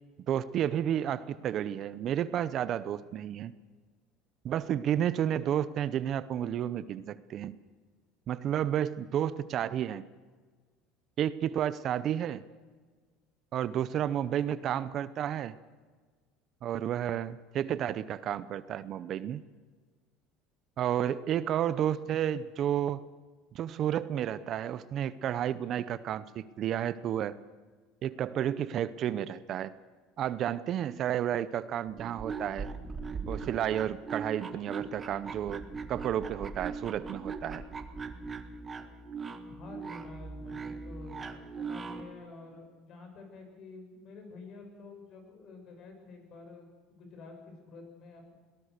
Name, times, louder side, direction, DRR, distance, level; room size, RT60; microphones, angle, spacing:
voice 1, 0.3-3.5 4.4-7.5 8.3-10.0 11.2-12.4 13.5-15.5 16.6-19.4 20.8-23.1 23.5-27.4 28.0-29.7 30.2-32.7 33.3-37.6, right 10 dB, 45° right, 16 dB, 0.7 m, -31 dB
voice 2, 14.6-14.9 39.5-41.3 41.5-48.3, left 3 dB, 45° left, 4 dB, 7.3 m, -49 dB
sound 1, 31.9-42.1, right 4 dB, 20° right, 1.6 m, -40 dB
22.5 x 18.0 x 6.7 m, 1.5 s
cardioid pair, 135°, 0 cm